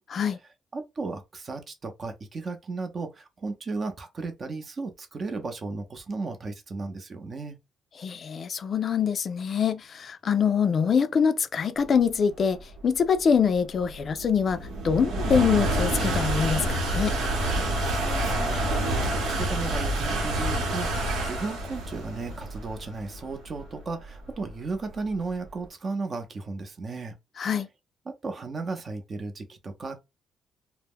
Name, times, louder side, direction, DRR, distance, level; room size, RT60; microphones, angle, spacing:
voice 1, 0.7-7.6 17.8-27.2 28.1-30.0, right 3 dB, 40° right, 0.7 m, -35 dB
voice 2, 8.0-17.2 27.4-27.7, left 6 dB, 50° left, 0.3 m, -24 dB
sound 1, 12.1-25.5, right 1 dB, 85° right, 0.9 m, -28 dB
2.1 x 2.0 x 3.5 m
cardioid pair, 90°, 0 cm